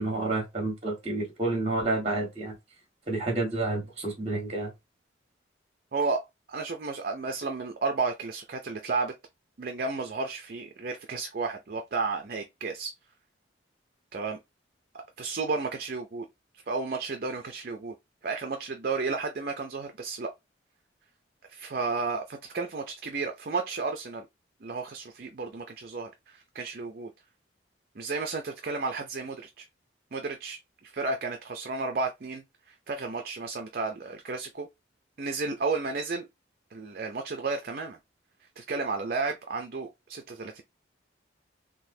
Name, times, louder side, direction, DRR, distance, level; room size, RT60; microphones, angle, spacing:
voice 1, 0.0-2.5 3.1-4.7, right 2 dB, 35° right, 1.4 m, -29 dB
voice 2, 5.9-9.1 9.6-12.9 14.1-14.4 15.2-16.3 16.5-17.9 18.2-20.3 21.5-24.3 24.6-27.1 28.0-29.7 30.1-34.7 35.2-36.3 36.7-38.0 38.4-40.6, right 4 dB, 50° right, 0.5 m, -32 dB
3.9 x 2.7 x 2.7 m
head